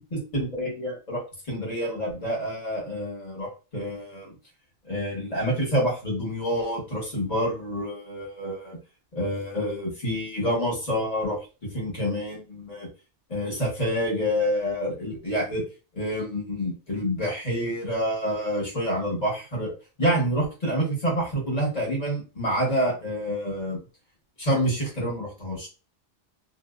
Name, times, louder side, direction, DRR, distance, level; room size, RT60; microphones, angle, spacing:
voice 1, 0.1-1.2 1.5-4.3 4.8-8.8 9.1-11.4 11.7-12.9 13.3-15.6 15.9-19.7 20.0-23.8 24.4-25.7, equal, 35° left, -3 dB, 1.2 m, -27 dB
2.5 x 2.1 x 2.4 m, 0.32 s
omnidirectional pair, 1.2 m